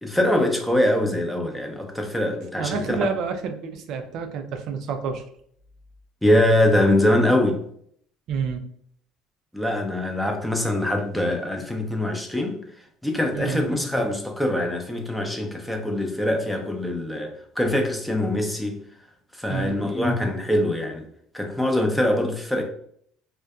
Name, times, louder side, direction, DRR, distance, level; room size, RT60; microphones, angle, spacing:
voice 1, 0.0-3.0 6.2-7.6 9.5-12.6 13.0-18.8 19.3-21.0 21.3-22.6, left 1 dB, 5° left, 3 dB, 0.5 m, -23 dB
voice 2, 2.6-5.2 8.3-8.6 13.3-13.7 19.5-19.8, right 5 dB, 65° right, 6 dB, 0.3 m, -28 dB
2.5 x 2.1 x 2.3 m, 0.65 s
supercardioid pair, 95°, 0 cm